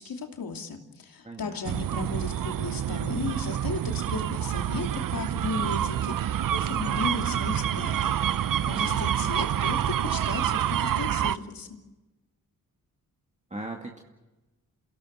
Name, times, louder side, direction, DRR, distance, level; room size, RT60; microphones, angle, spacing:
voice 1, 0.0-11.8, left 4 dB, 65° left, 3 dB, 2.9 m, -35 dB
voice 2, 1.2-1.9 8.6-9.0 13.5-14.0, right 2 dB, 20° right, 1 dB, 2.3 m, -39 dB
sound 1, 1.7-11.4, right 10 dB, 60° right, 0.7 m, -27 dB
28.0 x 17.0 x 8.2 m, 1.1 s
cardioid pair, 60°, 37 cm